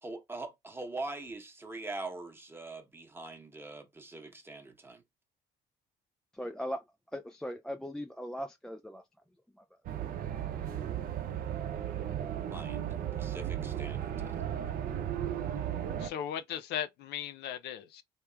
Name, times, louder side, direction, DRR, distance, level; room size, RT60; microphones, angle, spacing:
voice 1, 0.0-5.0 12.5-14.4, right 2 dB, 15° right, 1.0 m, -43 dB
voice 2, 6.3-6.8 7.1-9.0 9.6-9.7, equal, 5° left, 0.4 m, -39 dB
sound 1, 9.8-16.1, right 10 dB, 60° right, 0.7 m, -35 dB
voice 3, 16.0-18.0, left 10 dB, 75° left, 0.6 m, -37 dB
3.4 x 3.0 x 2.3 m
cardioid pair, 110°, 17 cm